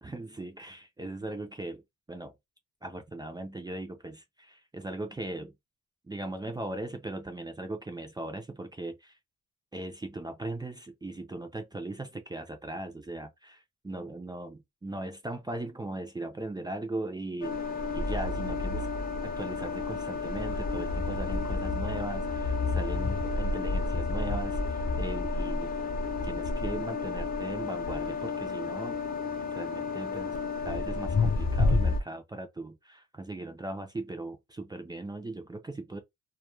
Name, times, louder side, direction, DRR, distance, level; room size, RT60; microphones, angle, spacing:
voice 1, 0.0-2.3 2.8-5.5 6.0-9.2 9.7-17.6 17.9-18.9 19.2-25.7 26.2-29.0 29.4-30.4 30.6-36.0, right 2 dB, 15° right, 0.4 m, -39 dB
sound 1, 17.4-32.0, left 3 dB, 30° left, 0.6 m, -30 dB
2.2 x 2.1 x 3.0 m
cardioid pair, 125°, 32 cm